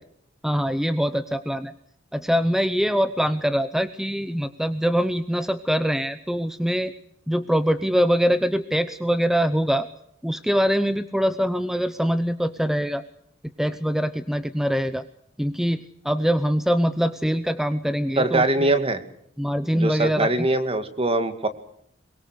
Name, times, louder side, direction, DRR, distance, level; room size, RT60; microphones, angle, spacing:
voice 1, 0.4-1.7 2.1-6.9 7.3-9.9 10.2-13.0 13.6-15.1 15.4-18.7 19.4-20.5, equal, ahead, 11 dB, 0.9 m, -23 dB
voice 2, 18.2-19.0 19.7-21.5, right 2 dB, 30° right, 9 dB, 2.3 m, -22 dB
23.0 x 23.0 x 6.6 m, 0.70 s
head